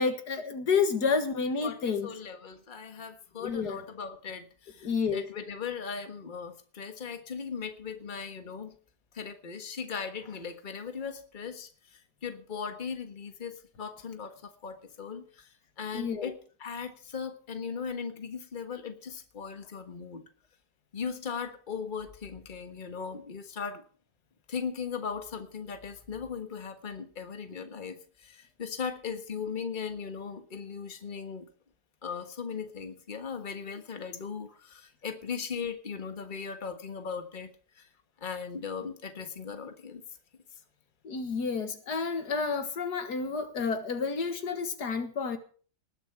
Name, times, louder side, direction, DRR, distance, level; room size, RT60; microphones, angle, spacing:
voice 1, 0.0-2.1 3.4-3.8 4.8-5.2 15.9-16.3 41.0-45.4, left 5 dB, 85° left, 8 dB, 2.2 m, -30 dB
voice 2, 1.6-8.7 9.1-15.5 15.8-16.3 16.6-20.2 20.9-23.8 24.5-31.5 32.0-37.5 37.8-37.9 38.2-40.0, left 6 dB, 30° left, 8 dB, 1.6 m, -38 dB
19.5 x 8.0 x 5.9 m, 0.41 s
omnidirectional pair, 1.7 m